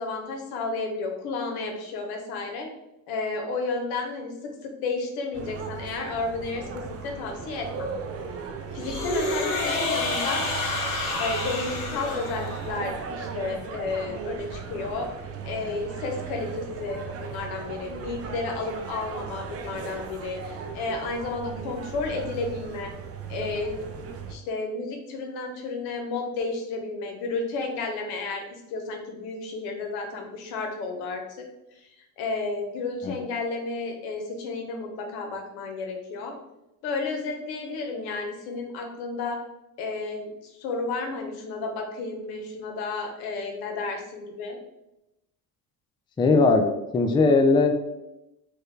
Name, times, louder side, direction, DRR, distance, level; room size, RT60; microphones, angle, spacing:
voice 1, 0.0-2.7 3.1-7.9 8.7-10.5 11.2-15.1 15.4-22.9 23.3-23.8 24.3-31.2 32.2-36.3 36.8-39.4 39.8-44.6, left 3 dB, 90° left, 2 dB, 0.9 m, -32 dB
sound 1, 5.3-24.3, right 6 dB, 40° right, 0.5 m, -37 dB
sound 2, 8.8-12.9, left 3 dB, 60° left, 1.4 m, -29 dB
voice 2, 46.2-46.7 46.9-47.7, left 3 dB, 15° left, 5 dB, 0.3 m, -19 dB
4.5 x 2.1 x 3.2 m, 0.90 s
cardioid pair, 100°, 37 cm